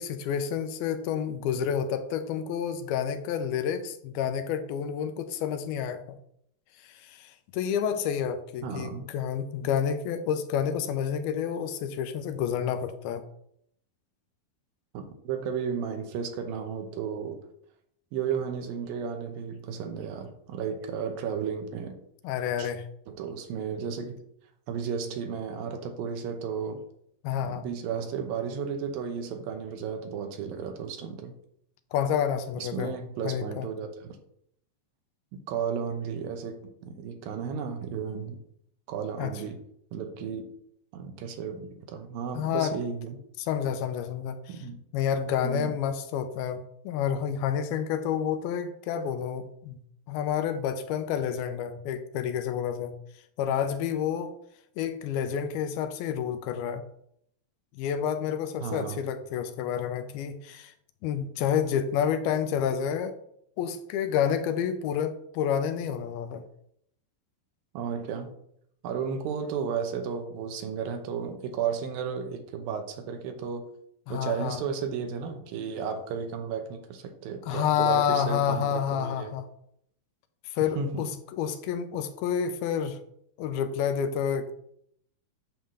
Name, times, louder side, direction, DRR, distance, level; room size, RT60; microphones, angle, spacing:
voice 1, 0.0-6.2 6.8-13.2 22.2-22.9 27.2-27.7 31.9-32.9 33.2-33.7 39.2-39.3 42.3-42.7 43.4-44.6 44.9-49.8 50.1-53.0 53.4-54.4 54.8-56.8 57.7-60.7 61.0-63.2 63.6-66.4 74.1-74.6 77.5-79.4 80.5-83.0 83.4-84.6, left 8 dB, 90° left, 9 dB, 2.6 m, -29 dB
voice 2, 8.6-9.1 14.9-17.4 18.1-22.0 22.6-22.7 23.1-24.2 24.7-26.8 27.5-31.3 32.6-34.2 35.3-38.4 38.9-39.6 39.9-40.5 40.9-43.2 44.5-44.8 45.4-45.8 58.6-59.0 67.7-68.3 68.8-73.7 74.1-79.3 80.8-81.1, right 6 dB, 75° right, 6 dB, 2.6 m, -33 dB
8.9 x 3.7 x 6.8 m, 0.71 s
omnidirectional pair, 4.3 m